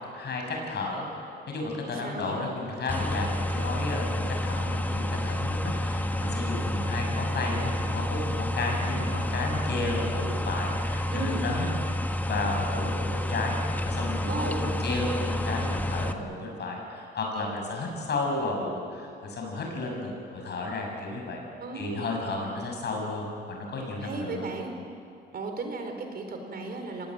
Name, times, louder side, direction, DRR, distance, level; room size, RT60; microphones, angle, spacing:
voice 1, 0.1-11.6 12.3-21.4 21.7-24.5, left 2 dB, 60° left, 0 dB, 6.9 m, -33 dB
voice 2, 1.9-2.4 11.1-11.4 14.3-14.6 21.6-22.0 24.0-24.7 25.3-27.1, right 3 dB, 50° right, 4 dB, 4.3 m, -35 dB
sound 1, 2.9-16.1, left 1 dB, 10° left, 1.4 m, -29 dB
25.0 x 18.0 x 9.4 m, 2.5 s
cardioid pair, 90°, 20 cm